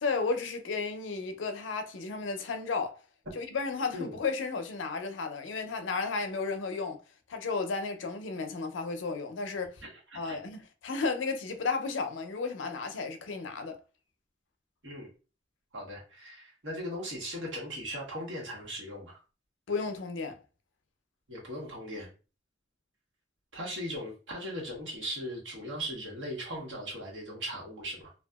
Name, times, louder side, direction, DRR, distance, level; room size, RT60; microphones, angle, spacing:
voice 1, 0.0-3.0 3.3-7.0 7.3-9.8 10.1-13.8 19.7-20.4, left 4 dB, 85° left, 0.5 m, -33 dB
voice 2, 9.8-10.4 14.8-15.1 15.7-19.2 21.3-22.1 23.5-28.1, equal, 80° right, 1.2 m, -38 dB
2.7 x 2.3 x 2.3 m
head